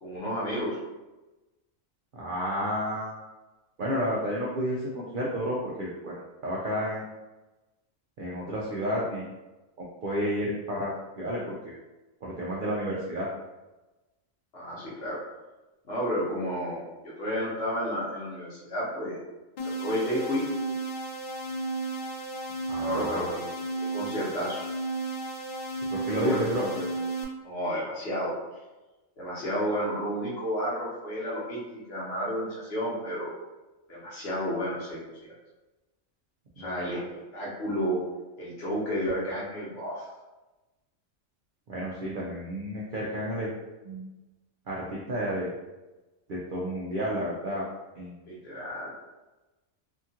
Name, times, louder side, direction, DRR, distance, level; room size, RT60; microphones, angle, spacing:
voice 1, 0.0-0.8 14.5-15.2 15.8-19.2 19.6-20.5 22.8-23.4 23.8-24.7 26.1-26.8 27.4-28.3 29.2-33.4 33.9-35.3 36.6-38.0 38.4-40.1 48.3-48.9, equal, 55° left, -7 dB, 1.2 m, -31 dB
voice 2, 2.1-3.2 3.8-7.0 8.2-9.3 10.0-11.7 12.2-13.3 22.7-23.3 25.9-26.7 36.6-36.9 41.7-43.5 43.8-44.1 44.7-45.5 46.3-47.7 48.0-48.1, equal, 60° right, -5 dB, 0.5 m, -31 dB
sound 1, 19.6-27.2, right 2 dB, 75° left, 0.4 m, -34 dB
2.8 x 2.4 x 2.7 m, 1.1 s
omnidirectional pair, 1.3 m